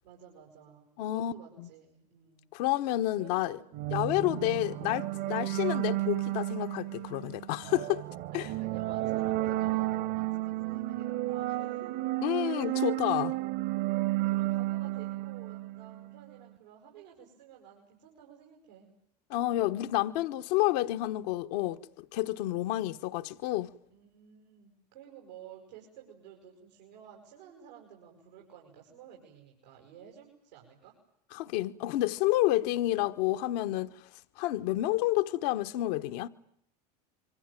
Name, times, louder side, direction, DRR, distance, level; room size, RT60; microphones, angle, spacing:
voice 1, 0.0-2.5 3.2-4.2 8.3-12.0 12.5-12.9 14.0-18.9 23.9-31.0 32.5-33.0 34.6-35.0, right 9 dB, 90° right, 7.5 m, -53 dB
voice 2, 1.0-1.3 1.6-1.7 2.5-3.6 3.9-8.0 8.3-8.5 12.2-13.3 19.3-23.7 31.3-33.9 34.4-36.3, left 16 dB, 70° left, 1.3 m, -29 dB
sound 1, 3.7-16.2, right 17 dB, 65° right, 2.5 m, -32 dB
26.5 x 24.5 x 9.1 m
hypercardioid pair, 100°, 21 cm